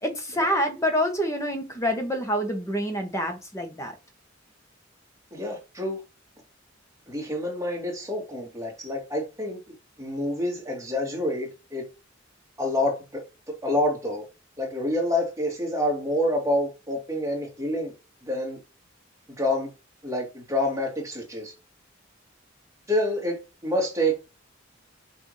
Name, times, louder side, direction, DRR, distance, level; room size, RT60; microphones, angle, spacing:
voice 1, 0.0-3.9, equal, 15° left, 0.9 m, -27 dB
voice 2, 5.3-6.0 7.1-9.6 10.0-11.8 12.6-13.2 13.5-14.2 14.6-17.9 18.2-18.6 19.4-19.7 20.0-21.5 22.9-24.1, left 1 dB, 15° right, 1.9 m, -27 dB
5.9 x 2.6 x 3.1 m
head